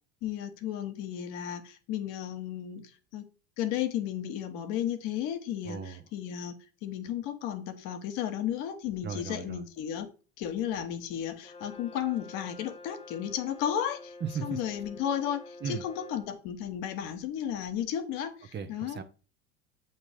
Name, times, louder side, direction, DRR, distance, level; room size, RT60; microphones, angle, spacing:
voice 1, 0.2-3.3 3.6-10.1 10.4-14.1 14.4-19.0, left 10 dB, 65° left, 1.0 m, -34 dB
voice 2, 5.6-6.0 9.0-9.6 14.2-14.6 15.6-15.8 18.5-19.0, right 6 dB, 30° right, 0.8 m, -36 dB
Brass instrument, 11.4-16.3, left 2 dB, 15° left, 0.7 m, -48 dB
7.4 x 2.8 x 4.9 m
hypercardioid pair, 80°, 38 cm